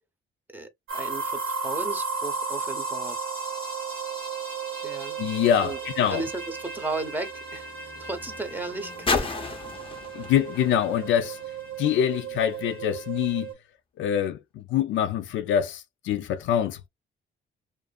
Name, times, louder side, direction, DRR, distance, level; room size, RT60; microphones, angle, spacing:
voice 1, 0.5-3.2 4.8-5.2 5.6-5.8 6.1-9.3, right 3 dB, 10° right, 0.7 m, -35 dB
sound 1, 0.9-13.5, right 4 dB, 90° right, 1.1 m, -34 dB
voice 2, 5.2-6.2 10.1-11.4 11.8-13.5 14.0-16.9, left 9 dB, 75° left, 0.5 m, -25 dB
sound 2, 5.8-12.0 12.9-13.0, left 4 dB, 25° left, 0.6 m, -35 dB
2.5 x 2.5 x 2.2 m
cardioid pair, 90°, 20 cm